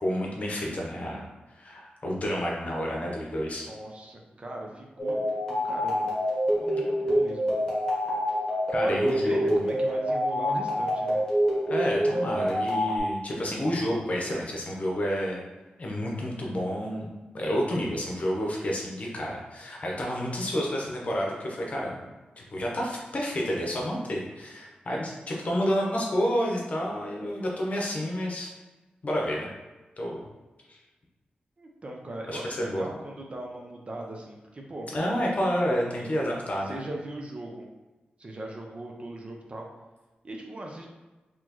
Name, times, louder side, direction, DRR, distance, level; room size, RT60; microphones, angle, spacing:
voice 1, 0.0-3.7 8.7-9.6 11.7-15.4 15.8-17.1 17.3-22.0 22.4-28.5 29.0-29.5 30.0-30.2 30.7-30.8 32.3-32.9 34.9-36.8, equal, 45° left, -2 dB, 0.8 m, -29 dB
voice 2, 3.5-5.3 5.6-6.1 6.6-7.5 8.7-11.2 31.6-34.9 35.9-36.1 36.7-37.7 38.2-39.7 40.2-40.9, right 1 dB, 35° right, 0 dB, 0.6 m, -39 dB
sound 1, 5.0-13.0, equal, 15° left, 1.4 m, -26 dB
4.2 x 2.9 x 2.9 m, 1.2 s
wide cardioid pair, 125°, 3 cm